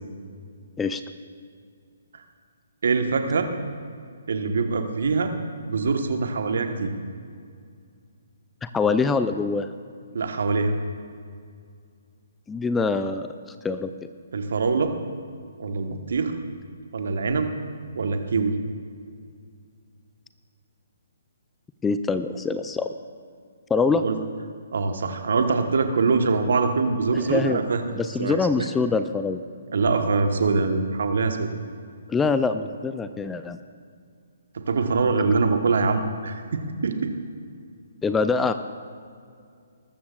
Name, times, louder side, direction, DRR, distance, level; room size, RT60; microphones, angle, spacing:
voice 1, 2.8-3.5 4.3-5.3 5.7-6.9 10.1-10.7 14.3-14.9 15.6-16.4 16.9-17.5 17.9-18.6 24.0-24.2 24.7-27.8 28.2-28.7 29.7-31.5 34.5-37.1, right 4 dB, 65° right, 6 dB, 1.3 m, -24 dB
voice 2, 8.6-9.7 12.5-13.3 13.6-13.9 21.8-22.9 23.7-24.0 27.3-27.6 28.0-29.4 32.1-33.6 38.0-38.5, left 4 dB, 10° left, 10 dB, 0.4 m, -24 dB
19.5 x 14.0 x 2.5 m, 2.2 s
figure-of-eight pair, 135°, 0 cm